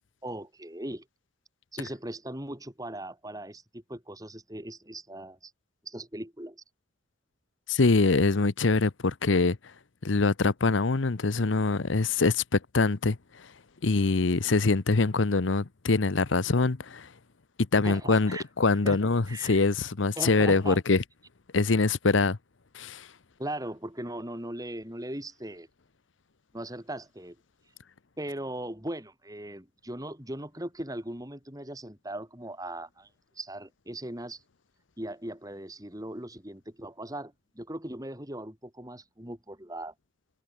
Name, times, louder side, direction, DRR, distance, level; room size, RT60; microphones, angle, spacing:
voice 1, 0.2-1.0 1.7-5.5 5.8-6.6 17.8-18.4 18.8-19.0 19.3-19.6 20.2-20.8 23.4-25.7 26.5-27.4 28.2-33.1 33.4-34.4 35.0-39.9, right 1 dB, 20° right, 4.5 m, -39 dB
voice 2, 7.7-9.6 10.0-13.5 13.8-17.1 17.7-21.0 21.5-22.4 22.7-23.1, left 3 dB, 75° left, 0.9 m, -24 dB
head